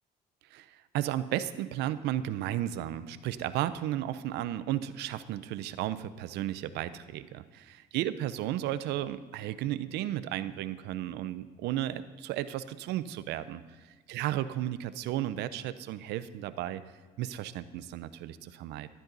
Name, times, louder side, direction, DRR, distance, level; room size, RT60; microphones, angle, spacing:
voice 1, 0.5-16.8 17.2-18.9, right 12 dB, 85° right, 13 dB, 0.6 m, -34 dB
12.5 x 10.5 x 4.0 m, 1.3 s
cardioid pair, 110°, 17 cm